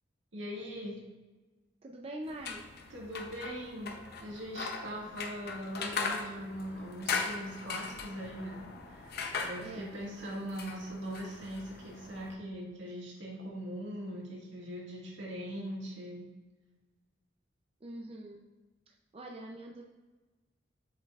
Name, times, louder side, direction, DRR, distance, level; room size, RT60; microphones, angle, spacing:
voice 1, 0.3-1.0 2.9-16.3, equal, 80° right, -4 dB, 1.9 m, -41 dB
voice 2, 1.8-2.6 9.6-9.9 17.8-18.4 19.1-19.8, right 1 dB, 30° right, 0 dB, 0.5 m, -43 dB
sound 1, 2.3-12.3, left 4 dB, 55° left, 0.6 m, -40 dB
7.4 x 5.3 x 2.4 m, 1.2 s
head